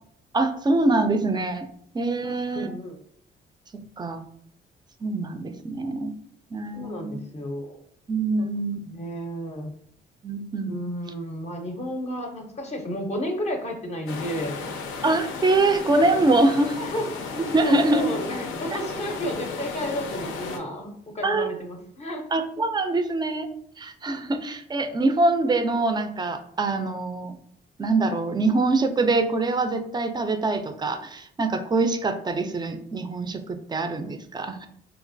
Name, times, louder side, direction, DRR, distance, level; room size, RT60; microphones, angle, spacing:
voice 1, 0.3-1.7 1.9-2.7 3.7-4.3 5.0-6.1 6.5-7.2 8.1-8.8 10.2-10.8 15.0-16.8 17.3-18.1 21.2-21.5 22.3-23.5 23.8-27.3 27.8-34.7, right 2 dB, 20° right, 8 dB, 0.4 m, -24 dB
voice 2, 2.2-3.0 6.7-7.8 8.4-8.5 8.9-9.7 10.7-14.6 16.8-17.1 17.6-22.2, equal, 35° left, 1 dB, 0.5 m, -32 dB
sound 1, 14.1-20.6, left 4 dB, 90° left, 0.5 m, -34 dB
3.0 x 2.4 x 2.5 m, 0.67 s
cardioid pair, 90°, 20 cm